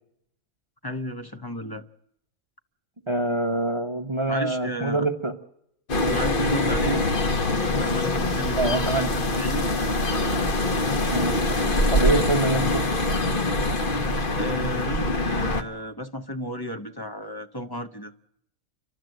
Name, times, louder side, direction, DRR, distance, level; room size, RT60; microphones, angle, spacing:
voice 1, 0.8-1.8 4.3-5.1 6.1-7.0 7.7-9.8 14.3-18.1, equal, 20° left, 7 dB, 0.8 m, -33 dB
voice 2, 3.1-5.3 8.5-9.1 11.0-11.3 11.9-12.8, right 2 dB, 25° right, 7 dB, 0.8 m, -25 dB
sound 1, 5.9-15.6, left 1 dB, 45° left, 1.3 m, -24 dB
30.0 x 12.5 x 7.8 m, 0.77 s
omnidirectional pair, 1.3 m